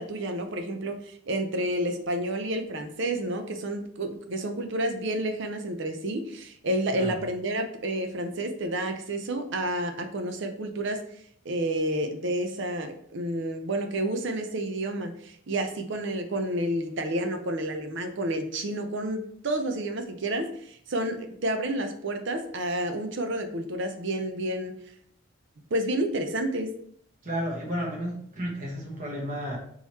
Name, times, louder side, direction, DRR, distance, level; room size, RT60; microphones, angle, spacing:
voice 1, 0.0-11.0 11.4-24.7 25.7-26.7, right 1 dB, 60° right, 6 dB, 0.6 m, -30 dB
voice 2, 27.2-29.6, equal, 40° right, -3 dB, 1.2 m, -32 dB
3.8 x 3.1 x 4.1 m, 0.65 s
head